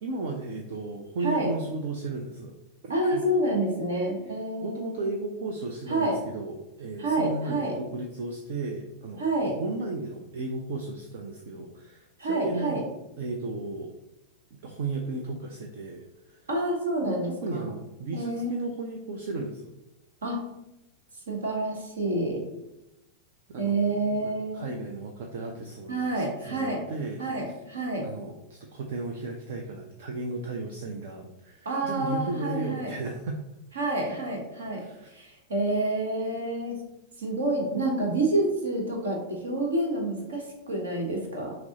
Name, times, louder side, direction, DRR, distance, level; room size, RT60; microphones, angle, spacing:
voice 1, 0.0-2.6 2.8-3.2 4.6-9.3 9.6-12.8 13.2-13.9 14.6-16.4 17.0-19.7 23.5-27.2 28.0-33.4 34.7-35.1, right 3 dB, 55° right, 2 dB, 0.5 m, -35 dB
voice 2, 1.2-1.5 2.9-5.0 5.9-6.2 7.0-7.7 9.2-9.6 12.2-12.8 16.5-17.7 18.1-18.7 20.2-20.4 21.3-22.4 23.6-24.7 25.9-26.8 27.2-28.1 31.6-32.9 33.7-34.8 35.1-36.7 37.2-41.5, right 2 dB, 70° right, 0 dB, 1.2 m, -28 dB
5.9 x 2.0 x 3.8 m, 0.94 s
figure-of-eight pair, 90°, 0 cm